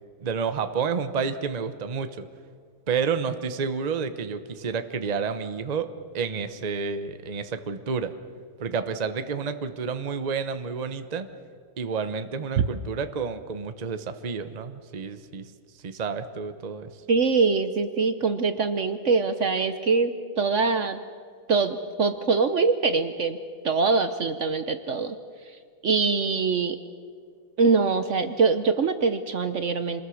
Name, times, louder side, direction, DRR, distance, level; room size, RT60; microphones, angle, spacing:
voice 1, 0.2-2.3 2.9-5.9 6.1-8.1 8.6-11.3 11.8-15.5 15.8-16.9, right 5 dB, 85° right, 10 dB, 0.3 m, -30 dB
voice 2, 17.1-21.0 21.5-23.4 23.6-25.1 25.8-26.8 27.6-30.0, right 4 dB, 65° right, 10 dB, 0.7 m, -23 dB
27.0 x 20.5 x 6.4 m, 2.1 s
omnidirectional pair, 2.3 m